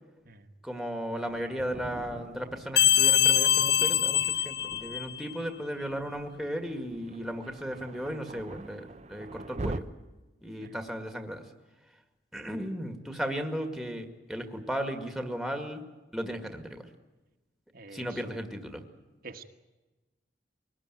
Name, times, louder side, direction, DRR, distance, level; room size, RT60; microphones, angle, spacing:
voice 1, 0.6-9.9 10.4-11.5 12.3-15.8 16.1-16.9 17.9-18.8, equal, ahead, 5 dB, 2.0 m, -35 dB
Thunder, 1.1-9.8, right 2 dB, 40° right, 0.7 m, -44 dB
sound 1, 2.8-5.3, left 11 dB, 60° left, 0.8 m, -23 dB
voice 2, 17.7-18.2 19.2-19.4, right 3 dB, 55° right, 4 dB, 1.5 m, -47 dB
23.5 x 19.0 x 9.2 m, 1.1 s
head